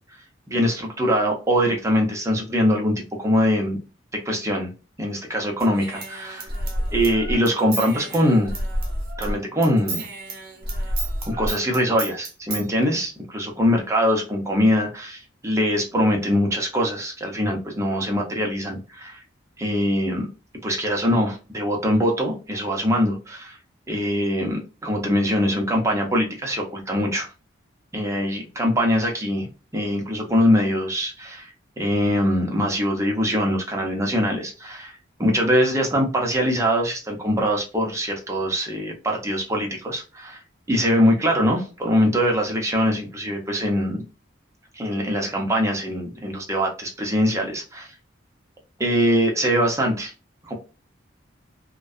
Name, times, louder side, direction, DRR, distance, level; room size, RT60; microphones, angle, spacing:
voice 1, 0.5-3.8 4.1-4.7 5.0-6.5 6.9-8.5 9.2-10.1 11.2-19.2 19.6-20.3 20.6-23.6 23.9-27.3 27.9-34.9 35.2-40.4 40.7-44.0 44.7-47.9 48.8-50.1 50.4-50.5, equal, 15° right, 0.5 m, -23 dB
Human voice / Scissors, 5.6-9.4 9.6-12.6, right 1 dB, 50° right, 0.8 m, -29 dB
2.5 x 2.2 x 2.3 m
head